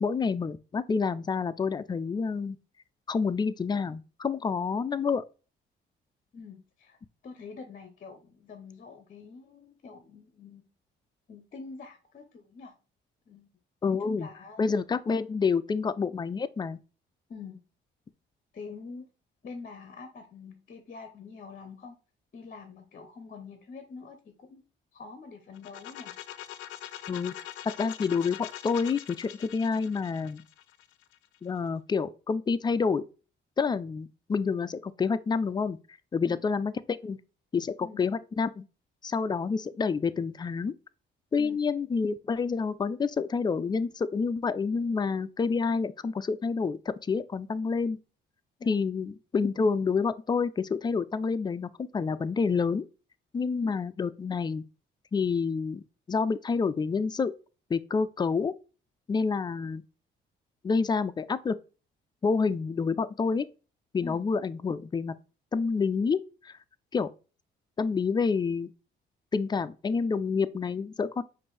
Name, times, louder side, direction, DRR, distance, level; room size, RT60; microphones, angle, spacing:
voice 1, 0.0-2.6 3.1-5.2 13.8-14.3 14.6-16.8 27.1-27.3 27.6-30.4 31.4-33.0 33.6-35.8 36.1-37.2 37.5-38.6 39.0-40.7 41.3-48.0 48.7-52.8 53.3-54.6 55.1-57.3 57.7-58.5 59.1-59.8 60.6-61.6 62.2-63.5 63.9-65.1 65.5-66.5 66.9-67.1 67.8-68.7 69.3-71.2, left 5 dB, 20° left, 0.3 m, -28 dB
voice 2, 6.3-7.0 7.2-10.7 11.3-12.7 13.3-13.5 14.0-14.7 17.3-17.6 18.5-19.1 19.4-22.0 22.3-24.6 24.9-26.1 36.2-36.4 37.8-38.0 41.4-41.6 48.6-48.9 53.6-53.7 64.0-64.2, left 4 dB, 45° left, 0.8 m, -45 dB
sound 1, 25.5-31.4, left 12 dB, 90° left, 0.4 m, -43 dB
5.1 x 2.6 x 3.2 m
cardioid pair, 90°, 20 cm